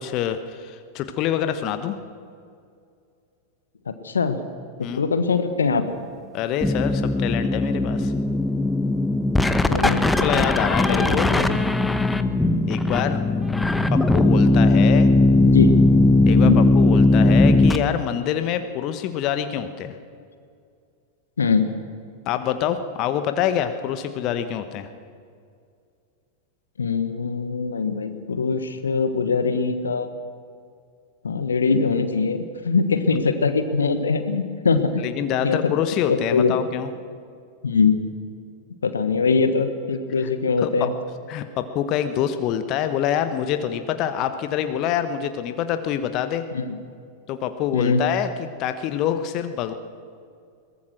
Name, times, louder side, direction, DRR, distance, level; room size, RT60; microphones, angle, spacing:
voice 1, 0.0-2.0 4.8-5.2 6.3-8.1 10.2-11.3 12.7-13.2 13.9-15.1 16.2-19.9 22.3-24.9 35.0-36.9 40.2-40.3 40.6-40.9 41.3-46.5 47.3-49.7, left 10 dB, 40° left, 9 dB, 1.3 m, -26 dB
voice 2, 3.9-4.4 5.0-5.8 9.7-10.4 10.9-11.6 15.4-15.8 16.3-16.6 21.4-21.7 26.8-30.1 31.2-35.1 35.4-35.7 36.1-36.5 37.6-38.0 38.8-40.9 46.5-46.7 47.7-48.0, left 4 dB, 70° left, 9 dB, 1.4 m, -22 dB
sound 1, 6.6-17.8, left 2 dB, 5° left, 1.0 m, -18 dB
22.0 x 20.0 x 6.3 m, 2.3 s
figure-of-eight pair, 90°, 0 cm